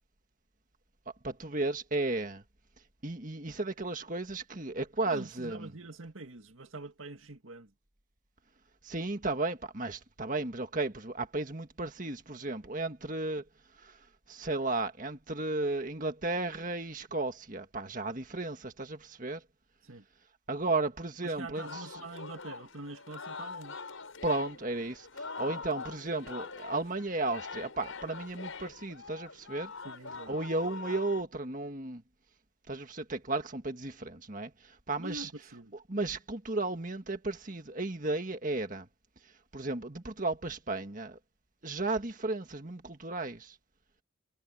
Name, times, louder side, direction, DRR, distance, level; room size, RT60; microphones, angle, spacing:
voice 1, 1.2-2.4 3.0-5.7 8.8-13.4 13.8-19.4 20.5-22.0 24.2-29.7 30.3-32.0 32.7-35.3 35.9-38.9 39.2-41.2 41.6-43.6, right 2 dB, 40° right, 1.8 m, -34 dB
voice 2, 5.1-7.7 19.8-20.0 21.2-23.8 29.8-30.4 35.0-35.7, right 2 dB, 80° right, 2.0 m, -45 dB
Singing, 21.5-31.2, left 4 dB, 85° left, 6.5 m, -43 dB
head